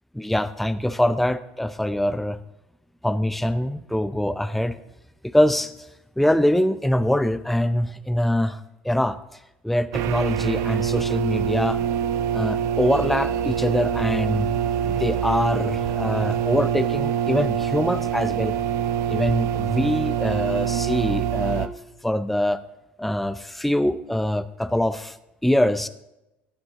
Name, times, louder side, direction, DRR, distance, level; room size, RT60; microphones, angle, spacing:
voice 1, 0.1-2.4 3.0-4.8 5.2-5.9 6.2-8.6 8.8-9.2 9.6-11.8 12.3-14.5 14.8-18.5 19.1-21.7 22.0-22.6 23.0-25.2 25.4-25.9, left 1 dB, 5° left, 13 dB, 0.6 m, -23 dB
sound 1, 9.9-21.7, right 9 dB, 60° right, 0.8 m, -25 dB
14.5 x 9.6 x 3.7 m, 0.92 s
hypercardioid pair, 70°, 6 cm